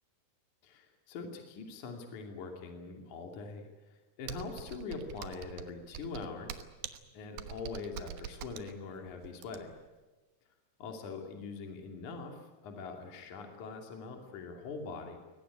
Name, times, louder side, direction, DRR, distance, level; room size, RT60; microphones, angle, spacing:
voice 1, 0.6-6.6 7.1-9.7 10.8-15.2, left 4 dB, 55° left, 3 dB, 3.9 m, -43 dB
Computer keyboard, 4.3-9.9, right 10 dB, 75° right, 3.0 m, -45 dB
23.0 x 18.5 x 9.9 m, 1.2 s
omnidirectional pair, 4.5 m